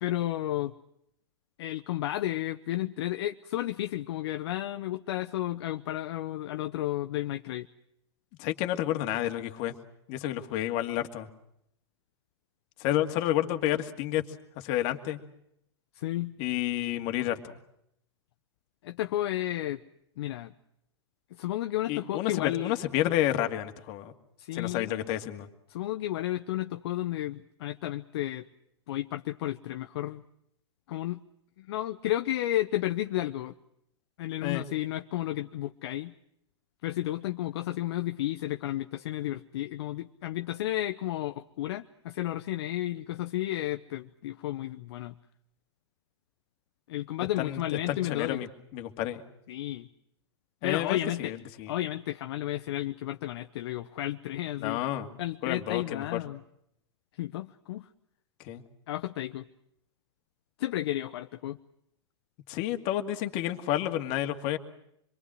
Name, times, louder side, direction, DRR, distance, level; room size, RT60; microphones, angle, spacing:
voice 1, 0.0-0.7 1.6-7.7 16.0-16.3 18.8-19.8 20.2-20.5 21.4-22.7 24.4-24.9 25.7-28.5 28.9-30.2 30.9-31.2 31.6-33.5 34.2-36.1 36.8-45.1 46.9-48.5 49.5-49.9 50.6-51.3 51.7-54.8 55.2-56.4 57.2-57.9 58.9-59.4 60.6-61.6, left 14 dB, 65° left, 8 dB, 0.9 m, -32 dB
voice 2, 8.4-9.7 10.1-11.3 12.8-14.2 14.6-15.2 16.4-17.5 21.9-24.1 24.5-25.5 34.4-34.7 47.2-47.6 47.9-49.2 50.6-51.7 54.6-55.1 55.4-56.2 58.4-58.6 62.5-64.6, left 13 dB, 45° left, 6 dB, 2.3 m, -30 dB
26.0 x 23.0 x 7.7 m, 0.77 s
hypercardioid pair, 110°, 14 cm